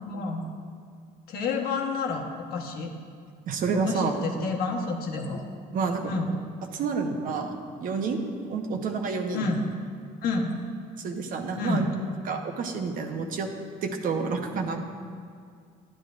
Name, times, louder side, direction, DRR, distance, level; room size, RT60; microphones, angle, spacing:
voice 1, 0.1-0.4 1.3-2.2 2.5-2.9 3.7-5.4 6.1-6.3 9.3-9.7 10.2-10.5 11.6-12.0, left 3 dB, 75° left, 0 dB, 1.3 m, -29 dB
voice 2, 3.5-4.2 5.7-6.1 6.7-8.2 8.5-9.5 11.0-11.8 12.2-13.5 13.8-14.9, right 5 dB, 60° right, 4 dB, 1.0 m, -29 dB
10.5 x 9.9 x 2.5 m, 2.2 s
cardioid pair, 95°, 16 cm